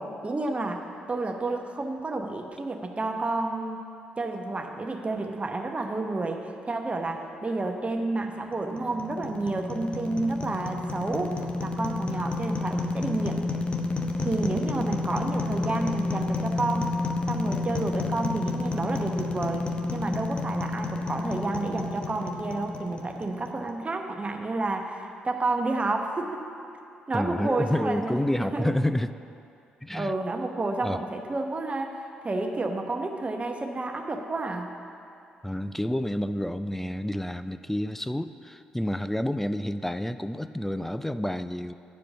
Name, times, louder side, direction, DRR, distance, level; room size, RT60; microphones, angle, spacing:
voice 1, 0.0-3.8 4.2-13.4 14.2-16.9 17.3-19.6 19.9-26.4 27.1-28.7 29.9-34.7, right 2 dB, 30° right, 4 dB, 1.0 m, -30 dB
sound 1, 8.5-23.7, left 3 dB, 25° left, 0.9 m, -30 dB
voice 2, 27.1-29.1 29.8-30.2 30.8-31.0 35.4-41.7, left 1 dB, 5° left, 12 dB, 0.4 m, -29 dB
9.5 x 5.0 x 7.0 m, 2.6 s
hypercardioid pair, 45°, 4 cm